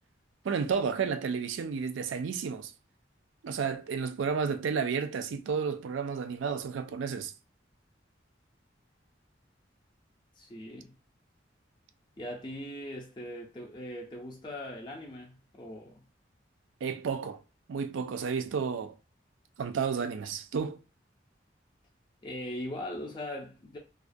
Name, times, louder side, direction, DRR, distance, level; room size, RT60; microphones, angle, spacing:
voice 1, 0.4-2.7 3.4-7.3 16.8-17.4 17.7-18.9 19.6-20.8, right 6 dB, 90° right, 0.4 m, -31 dB
voice 2, 10.4-11.0 12.2-16.1 22.2-23.8, left 1 dB, 25° left, 0.4 m, -40 dB
2.4 x 2.1 x 2.5 m
head